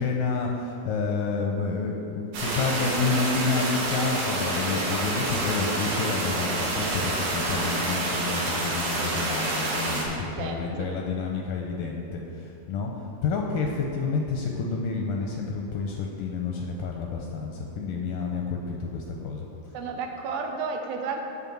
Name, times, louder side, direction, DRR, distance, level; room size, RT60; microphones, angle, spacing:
voice 1, 0.0-12.9 13.2-19.5, left 4 dB, 75° left, 0 dB, 2.0 m, -29 dB
sound 1, 2.3-10.0, right 2 dB, 65° right, 2.7 m, -28 dB
voice 2, 10.4-10.9 19.7-21.2, right 4 dB, 80° right, 3 dB, 2.4 m, -32 dB
10.5 x 4.1 x 7.6 m, 2.8 s
omnidirectional pair, 4.4 m